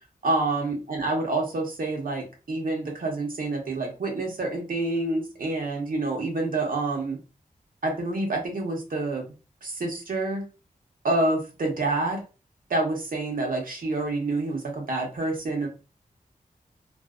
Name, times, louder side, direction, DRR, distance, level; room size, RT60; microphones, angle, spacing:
voice 1, 0.2-7.2 7.8-9.2 9.6-10.4 11.0-12.2 12.7-15.7, right 2 dB, 70° right, 1 dB, 0.9 m, -27 dB
2.6 x 2.1 x 2.4 m, 0.32 s
cardioid pair, 60°, 15 cm